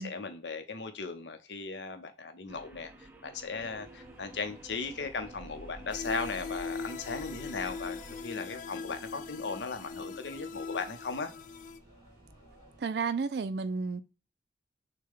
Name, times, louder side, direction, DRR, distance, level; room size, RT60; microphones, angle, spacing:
voice 1, 0.0-11.3, left 4 dB, 90° left, 0.8 m, -37 dB
sound 1, 2.5-8.2, right 1 dB, 10° right, 0.6 m, -50 dB
sound 2, 3.5-12.8, right 1 dB, 25° right, 2.5 m, -55 dB
sound 3, 5.9-11.8, left 5 dB, 45° left, 0.3 m, -41 dB
voice 2, 12.8-14.0, right 4 dB, 65° right, 0.4 m, -32 dB
6.5 x 2.2 x 3.6 m
head